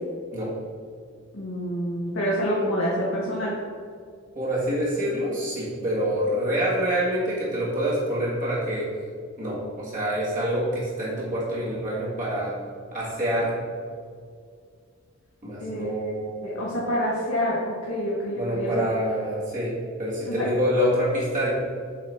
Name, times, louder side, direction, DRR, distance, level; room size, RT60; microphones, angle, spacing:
voice 1, 1.3-3.6 15.6-16.1 16.4-18.8 20.3-20.4, equal, 70° left, -6 dB, 1.3 m, -27 dB
voice 2, 4.3-8.9 9.4-12.5 12.9-13.5 15.4-16.7 18.3-19.7 20.0-21.5, equal, 40° right, -7 dB, 1.8 m, -26 dB
8.2 x 4.0 x 4.5 m, 2.1 s
head